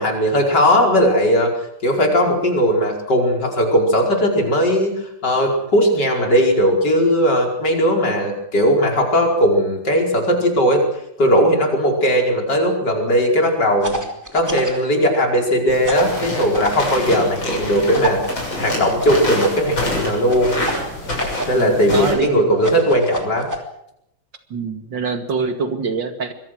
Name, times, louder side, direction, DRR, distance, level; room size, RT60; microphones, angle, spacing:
voice 1, 0.0-1.5 1.8-4.9 5.2-10.8 11.2-14.0 14.3-18.2 18.6-20.5 21.5-23.5, equal, 60° left, 1 dB, 5.6 m, -17 dB
sound 1, 13.8-14.8 15.8-16.8 17.9-19.2 20.3-21.6 22.6-23.6, right 1 dB, 10° right, 3.0 m, -28 dB
sound 2, 15.7-22.1, left 1 dB, 85° left, 7.9 m, -26 dB
voice 2, 21.5-22.7 24.5-26.3, right 4 dB, 70° right, 7 dB, 2.9 m, -25 dB
26.5 x 22.5 x 6.4 m, 0.78 s
omnidirectional pair, 2.1 m